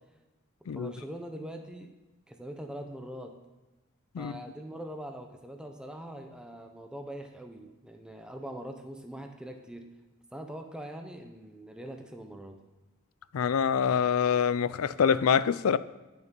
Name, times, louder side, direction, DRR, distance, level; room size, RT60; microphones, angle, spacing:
voice 1, 0.7-1.9 2.3-3.3 4.2-9.8 10.3-12.6, right 1 dB, 5° right, 0.7 m, -42 dB
voice 2, 13.3-15.8, left 7 dB, 80° left, 0.4 m, -25 dB
10.5 x 6.9 x 5.2 m
head